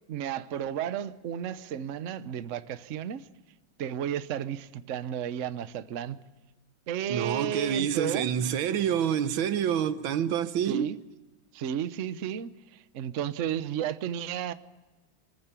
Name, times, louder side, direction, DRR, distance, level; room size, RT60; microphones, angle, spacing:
voice 1, 0.1-3.3 3.8-6.2 6.9-8.3 10.6-11.0 11.5-14.5, right 9 dB, 55° right, 0.9 m, -33 dB
voice 2, 7.1-10.9, right 9 dB, 80° right, 1.7 m, -27 dB
24.5 x 14.5 x 8.2 m
omnidirectional pair, 2.2 m